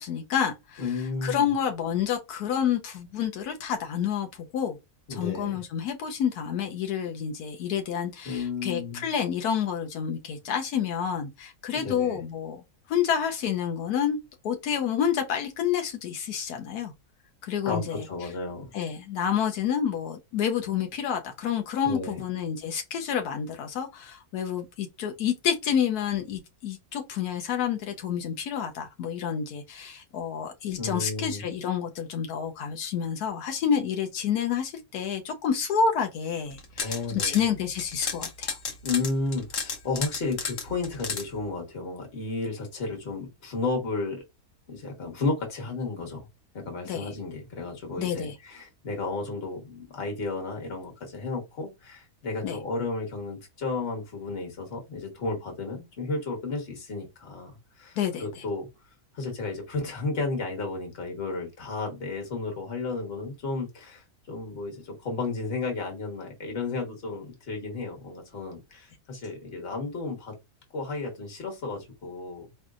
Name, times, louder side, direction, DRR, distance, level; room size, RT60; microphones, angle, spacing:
voice 1, 0.0-0.8 1.2-4.8 5.1-12.6 12.9-14.2 14.4-16.9 17.4-18.0 18.7-38.6 46.8-47.1 48.0-48.3 52.4-52.6 58.0-58.3, left 8 dB, 85° left, 1.2 m, -29 dB
voice 2, 0.8-1.5 5.1-5.6 8.2-9.1 11.7-12.2 17.6-18.7 21.8-22.2 30.8-31.4 36.8-37.5 38.8-44.2 44.7-46.3 46.5-58.7 59.1-70.3 70.7-72.5, left 3 dB, 40° left, 1.4 m, -33 dB
sound 1, 36.5-37.4 37.8-41.2, left 5 dB, 60° left, 1.2 m, -32 dB
4.3 x 3.2 x 2.4 m
omnidirectional pair, 1.6 m